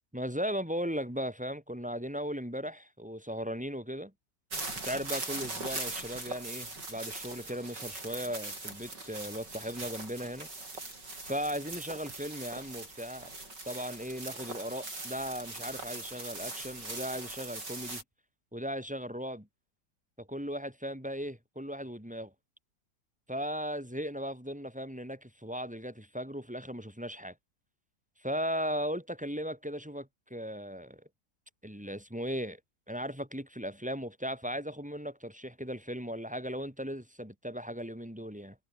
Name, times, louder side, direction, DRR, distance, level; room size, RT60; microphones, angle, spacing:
voice 1, 0.1-4.1 4.8-10.5 10.7-10.8 11.2-13.3 13.7-18.0 18.5-19.5 20.2-22.3 23.3-27.3 28.2-31.0 31.6-32.6 32.9-38.6, equal, 5° right, 4.9 m, -37 dB
sound 1, 4.5-18.0, right 2 dB, 90° right, 7.5 m, -41 dB
omnidirectional pair, 1.8 m